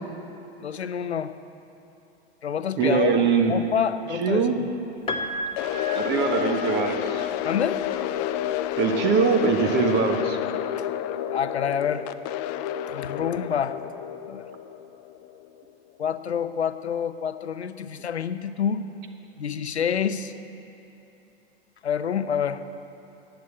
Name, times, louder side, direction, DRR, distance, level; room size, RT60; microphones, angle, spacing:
voice 1, 0.6-1.3 2.4-3.1 3.5-4.7 7.4-7.8 11.3-12.1 12.9-13.8 14.3-14.4 16.0-18.8 19.4-20.3 21.8-22.6, left 8 dB, 85° left, 12 dB, 0.7 m, -27 dB
voice 2, 2.8-3.5 4.2-4.5 5.9-7.3 8.8-10.4, right 5 dB, 35° right, 5 dB, 1.4 m, -22 dB
Piano, 5.1-7.1 8.4-8.5, equal, 15° left, 0.9 m, -33 dB
sound 1, 5.6-15.6, left 11 dB, 40° left, 0.5 m, -30 dB
11.5 x 9.2 x 8.2 m, 3.0 s
figure-of-eight pair, 100°, 32 cm